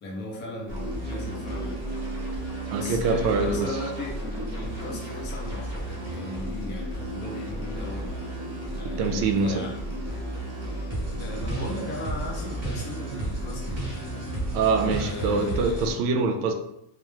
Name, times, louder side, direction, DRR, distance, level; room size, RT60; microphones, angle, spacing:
voice 1, 0.0-1.8 2.7-4.2 4.5-8.1 8.8-9.8 11.2-14.4 14.8-15.9, left 1 dB, 25° left, -2 dB, 0.4 m, -37 dB
sound 1, 0.7-15.9, right 1 dB, 30° right, 0.9 m, -33 dB
voice 2, 2.7-3.7 8.8-9.6 14.5-16.5, right 4 dB, 90° right, 5 dB, 0.6 m, -24 dB
2.2 x 2.0 x 3.0 m, 0.79 s
cardioid pair, 145°, 50 cm